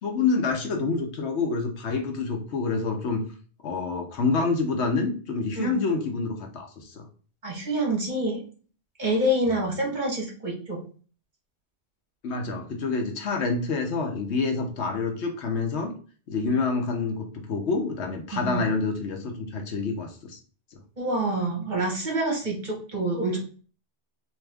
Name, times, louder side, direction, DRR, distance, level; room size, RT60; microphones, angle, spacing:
voice 1, 0.0-3.2 3.6-7.0 12.2-15.9 16.3-17.2 17.5-20.4, left 4 dB, 75° left, 4 dB, 1.1 m, -27 dB
voice 2, 7.4-8.4 9.0-10.8 18.3-18.7 21.0-23.4, right 1 dB, 40° right, -1 dB, 1.3 m, -27 dB
3.5 x 3.0 x 3.3 m, 0.40 s
omnidirectional pair, 1.2 m